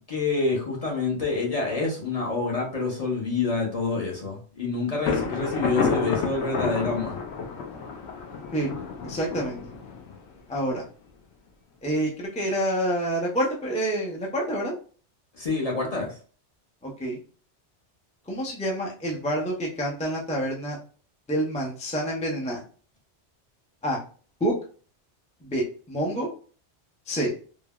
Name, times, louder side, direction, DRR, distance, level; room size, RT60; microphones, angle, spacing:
voice 1, 0.1-7.2 15.4-16.2, left 3 dB, 40° left, -2 dB, 0.7 m, -27 dB
Thunder, 5.1-10.7, left 5 dB, 75° left, 0.8 m, -30 dB
voice 2, 9.0-9.7 10.5-10.9 11.8-14.7 16.8-17.2 18.3-20.8 21.3-22.6 23.8-24.0 24.4-24.5 25.4-26.3 27.1-27.3, right 1 dB, 10° left, -3 dB, 0.3 m, -27 dB
3.3 x 2.1 x 2.2 m, 0.41 s
omnidirectional pair, 1.2 m